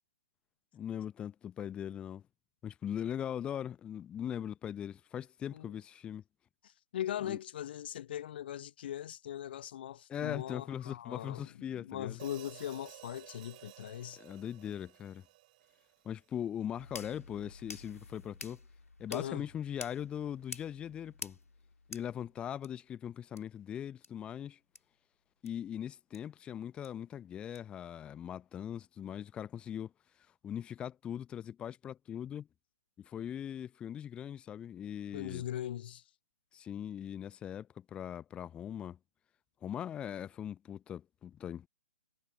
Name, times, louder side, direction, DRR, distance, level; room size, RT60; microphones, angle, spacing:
voice 1, 0.7-2.2 2.6-6.2 7.2-7.4 10.1-12.2 14.2-15.3 16.0-18.6 19.0-21.4 21.9-24.6 25.4-29.9 30.4-32.5 33.0-35.4 36.5-39.0 39.6-41.7, left 9 dB, 10° left, 0.9 m, -40 dB
voice 2, 6.6-11.5 11.7-14.2 19.1-19.4 35.1-36.0, left 11 dB, 40° left, 0.8 m, -40 dB
Hi-hat, 12.2-16.4, right 18 dB, 35° right, 4.3 m, -55 dB
sound 1, 16.8-22.7 23.4-23.5 24.0-24.1 24.7-24.8 25.5-25.6 26.1-26.2 26.8-26.9 27.5-27.6, left 3 dB, 75° left, 2.2 m, -49 dB
figure-of-eight pair, 125°, 8 cm